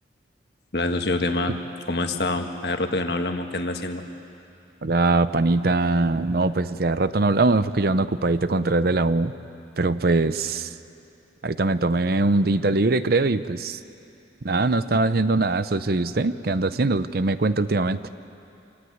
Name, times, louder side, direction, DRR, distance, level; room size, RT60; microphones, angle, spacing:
voice 1, 0.7-1.6 1.9-4.0, left 2 dB, 60° left, 5 dB, 1.6 m, -26 dB
voice 2, 4.8-9.3 9.8-10.7 11.4-13.8 14.4-18.0, right 3 dB, 55° right, 13 dB, 0.6 m, -22 dB
27.0 x 17.5 x 9.4 m, 2.7 s
head